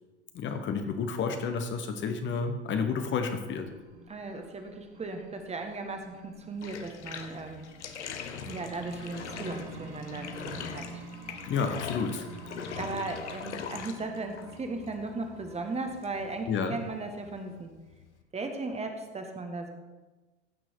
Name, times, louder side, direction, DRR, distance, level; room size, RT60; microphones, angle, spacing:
voice 1, 0.3-3.7 11.4-12.3 16.5-16.8, left 5 dB, 35° left, 6 dB, 1.1 m, -30 dB
sound 1, 3.3-16.3, right 3 dB, 50° right, 2.4 m, -48 dB
voice 2, 4.1-7.7 8.5-11.0 12.7-17.7 18.3-19.7, right 3 dB, 20° right, 5 dB, 1.4 m, -37 dB
Bathtub (filling or washing), 6.6-18.2, left 7 dB, 75° left, 1.0 m, -42 dB
15.5 x 6.1 x 4.6 m, 1.2 s
figure-of-eight pair, 80°, 35 cm